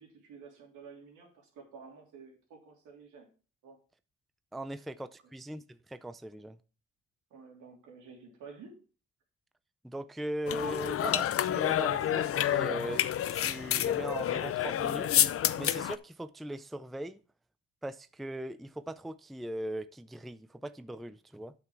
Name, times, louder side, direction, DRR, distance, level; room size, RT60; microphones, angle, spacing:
voice 1, 0.0-3.3 3.6-3.8 7.3-8.8, right 5 dB, 80° right, 3.2 m, -51 dB
voice 2, 4.5-6.6 9.8-15.1 15.6-17.2 17.8-21.5, right 1 dB, ahead, 0.4 m, -39 dB
sound 1, 10.5-16.0, left 11 dB, 50° left, 0.5 m, -29 dB
8.7 x 6.0 x 4.6 m
cardioid pair, 90°, 30 cm